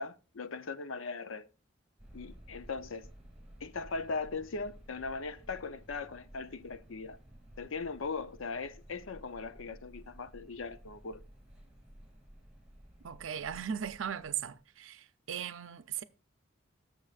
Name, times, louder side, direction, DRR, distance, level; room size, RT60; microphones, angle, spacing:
voice 1, 0.0-1.5 2.1-3.1 3.6-7.2 7.6-11.2, left 4 dB, 85° left, 0.7 m, -39 dB
sound 1, 2.0-14.6, equal, 5° right, 3.2 m, -55 dB
voice 2, 13.0-16.0, right 8 dB, 80° right, 0.5 m, -38 dB
19.0 x 6.5 x 2.5 m
head